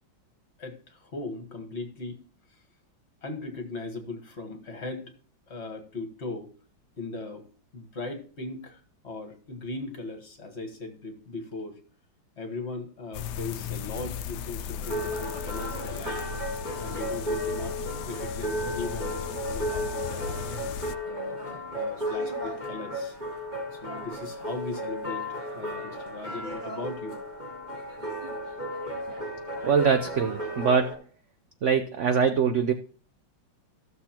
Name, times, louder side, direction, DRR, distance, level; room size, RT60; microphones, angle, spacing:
voice 1, 0.6-2.2 2.5-2.6 3.2-5.1 5.5-6.5 7.0-7.5 7.7-11.8 12.4-16.2 16.8-17.8 18.0-20.4 21.0-23.2 23.7-27.2, left 3 dB, 40° left, 4 dB, 1.5 m, -38 dB
sound 1, 13.1-21.0, left 8 dB, 70° left, 1.0 m, -36 dB
sound 2, 14.8-30.9, equal, 20° right, 2.8 m, -34 dB
voice 2, 29.6-31.0 31.6-32.7, right 6 dB, 80° right, 8 dB, 0.6 m, -23 dB
15.0 x 6.8 x 2.9 m, 0.41 s
omnidirectional pair, 2.1 m